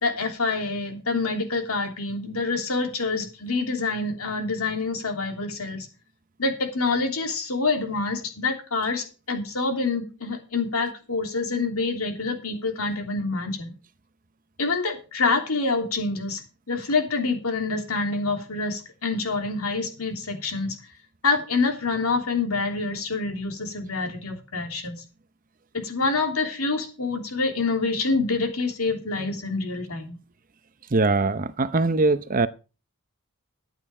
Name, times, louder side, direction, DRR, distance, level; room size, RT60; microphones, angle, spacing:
voice 1, 0.0-5.9 6.4-13.7 14.6-16.4 16.7-20.7 21.2-25.0 25.7-30.2, left 3 dB, 80° left, 3.2 m, -26 dB
voice 2, 30.9-32.5, right 3 dB, 40° right, 0.7 m, -22 dB
12.5 x 9.1 x 4.9 m
head